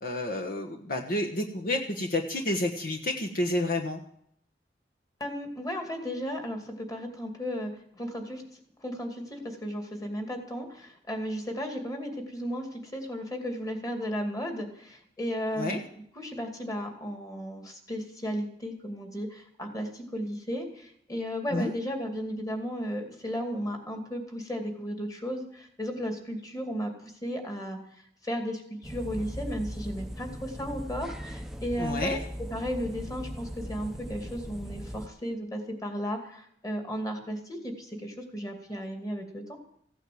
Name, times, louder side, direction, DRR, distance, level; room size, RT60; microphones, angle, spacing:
voice 1, 0.0-4.0 15.6-15.8 21.5-21.7 31.8-32.2, left 1 dB, 55° left, 2 dB, 1.3 m, -30 dB
voice 2, 5.2-8.4 8.8-15.8 16.2-26.9 27.2-27.8 28.2-32.2 32.5-39.6, equal, 20° left, 4 dB, 2.6 m, -34 dB
sound 1, 28.8-35.1, equal, 5° right, 0.8 m, -39 dB
16.0 x 9.0 x 7.8 m, 0.68 s
head